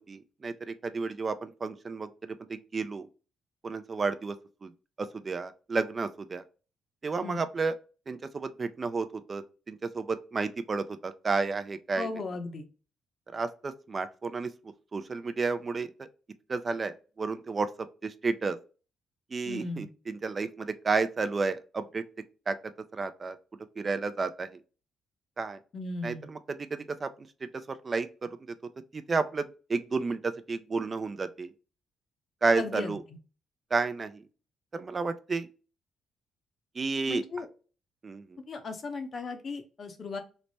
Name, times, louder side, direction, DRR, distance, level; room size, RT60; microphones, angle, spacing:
voice 1, 0.1-3.1 3.6-4.4 4.6-4.7 5.0-6.4 7.0-7.7 8.1-12.1 13.3-14.5 14.9-16.1 16.5-17.7 18.0-18.6 19.3-22.0 22.5-22.6 22.9-23.4 23.8-24.5 25.4-25.6 26.0-27.1 27.4-28.6 28.9-31.5 32.4-33.0 33.7-34.2 34.7-35.5 36.8-37.2 38.0-38.2, right 4 dB, 35° right, 0.3 m, -31 dB
voice 2, 12.0-12.7 19.4-19.9 25.7-26.3 32.6-33.0 37.1-37.5 38.5-40.2, left 3 dB, 50° left, 0.7 m, -36 dB
3.2 x 2.1 x 4.0 m
cardioid pair, 90°, 0 cm